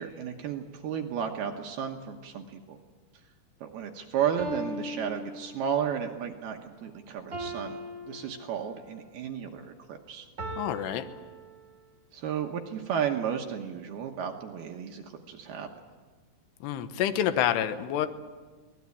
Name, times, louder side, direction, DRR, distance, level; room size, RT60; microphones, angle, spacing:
voice 1, 0.0-2.8 3.6-7.8 8.1-10.3 12.1-15.7, right 8 dB, 70° right, 3 dB, 2.8 m, -33 dB
sound 1, 3.6-3.7 4.4-6.0 7.3-8.9 10.4-12.0, equal, 30° right, 2.6 m, -40 dB
voice 2, 10.6-11.1 16.6-18.1, left 10 dB, 75° left, 10 dB, 2.9 m, -27 dB
25.0 x 19.0 x 8.5 m, 1.4 s
omnidirectional pair, 5.3 m